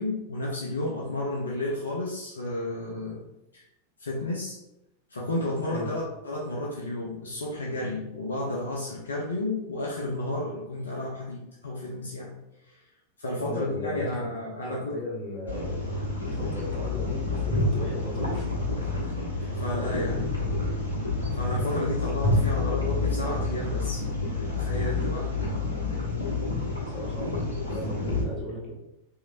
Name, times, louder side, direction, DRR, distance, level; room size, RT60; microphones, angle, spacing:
voice 1, 0.0-3.2 3.5-3.6 4.0-4.6 5.1-12.3 12.6-12.8 13.2-15.0 19.5-20.3 21.4-24.0 24.5-25.3, left 1 dB, 70° left, -3 dB, 0.5 m, -32 dB
voice 2, 13.4-14.3 14.6-15.8 16.3-18.9 19.3-20.2 26.9-28.7, left 1 dB, 30° left, -5 dB, 1.3 m, -37 dB
sound 1, 15.5-28.2, left 3 dB, 90° right, 0.9 m, -28 dB
3.0 x 2.9 x 2.5 m, 0.89 s
figure-of-eight pair, 90°, 0 cm